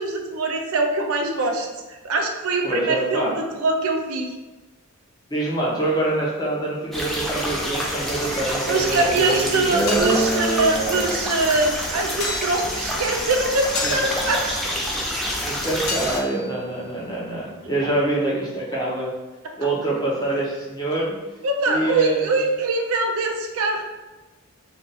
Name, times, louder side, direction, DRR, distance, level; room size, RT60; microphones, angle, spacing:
voice 1, 0.0-4.3 8.7-14.7 21.4-23.8, right 3 dB, 80° right, 3 dB, 0.5 m, -23 dB
voice 2, 2.6-3.4 5.3-11.1 13.8-14.0 15.4-19.1 19.6-21.2 21.7-22.4, right 2 dB, 20° left, -5 dB, 0.7 m, -25 dB
sound 1, 6.9-16.2, equal, ahead, 0.3 m, -28 dB
sound 2, 9.5-18.1, left 3 dB, 70° left, 0.7 m, -36 dB
2.5 x 2.4 x 4.0 m, 1.2 s
head